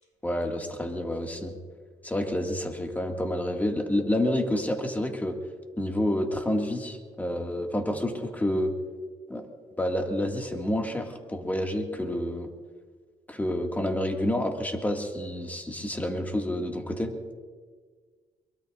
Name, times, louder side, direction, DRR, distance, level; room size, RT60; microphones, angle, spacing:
voice 1, 0.2-1.5 2.0-5.4 5.8-8.7 9.3-9.4 9.8-12.5 13.3-17.1, left 1 dB, 15° left, 2 dB, 2.2 m, -29 dB
23.0 x 22.5 x 2.6 m, 1.5 s
cardioid pair, 95°, 13 cm